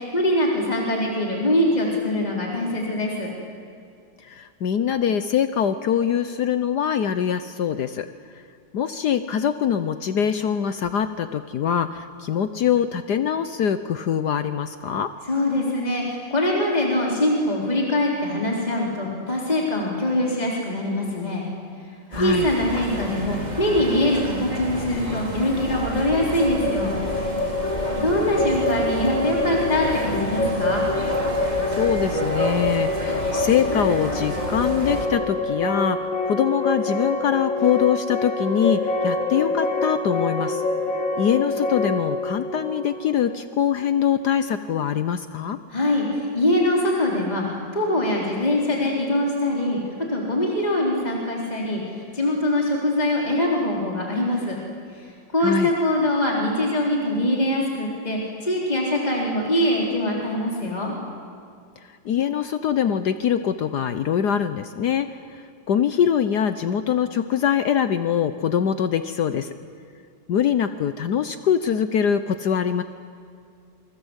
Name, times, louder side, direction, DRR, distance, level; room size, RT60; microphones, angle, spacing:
voice 1, 0.0-3.3 15.3-21.5 22.2-27.0 28.0-30.8 45.7-47.4 47.7-49.8 50.1-51.8 52.1-54.6 55.3-60.9, left 1 dB, 20° left, -2 dB, 4.2 m, -23 dB
voice 2, 4.2-8.1 8.7-15.1 22.1-22.5 31.7-40.6 41.2-45.6 55.4-55.7 62.0-69.5 70.3-72.8, left 8 dB, 65° left, 10 dB, 1.4 m, -23 dB
sound 1, 22.1-35.0, right 1 dB, 20° right, 3.9 m, -30 dB
sound 2, 26.1-43.9, left 2 dB, 80° left, 3.3 m, -26 dB
27.5 x 24.0 x 8.2 m, 2.4 s
omnidirectional pair, 2.0 m